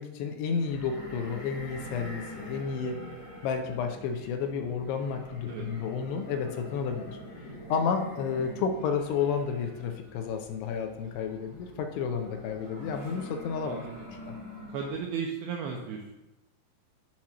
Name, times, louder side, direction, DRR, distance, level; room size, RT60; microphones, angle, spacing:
voice 1, 0.0-3.0 3.4-7.2 7.7-13.8, left 6 dB, 80° left, 6 dB, 2.6 m, -31 dB
sound 1, 0.6-15.1, left 1 dB, 45° left, 1.2 m, -45 dB
voice 2, 13.6-14.1 14.7-16.2, right 6 dB, 85° right, 1 dB, 2.2 m, -35 dB
7.4 x 2.9 x 5.8 m, 1.0 s
omnidirectional pair, 5.0 m